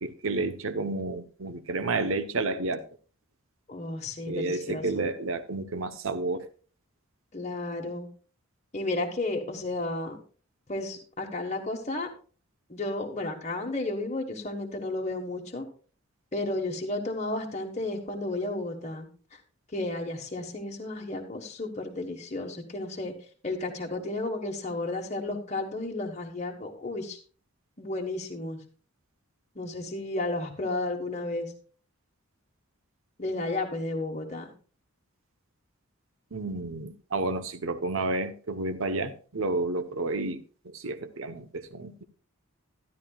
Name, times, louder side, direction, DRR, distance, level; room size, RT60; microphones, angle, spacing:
voice 1, 0.0-2.8 4.3-6.5 36.3-42.0, right 2 dB, 65° right, 0.9 m, -31 dB
voice 2, 3.7-4.8 7.3-8.1 8.7-10.2 10.7-12.1 12.7-15.6 16.3-19.4 19.7-23.1 23.4-27.2 27.8-28.6 29.5-31.5 33.2-34.5, left 2 dB, 30° left, 1.3 m, -33 dB
13.0 x 11.0 x 2.3 m
head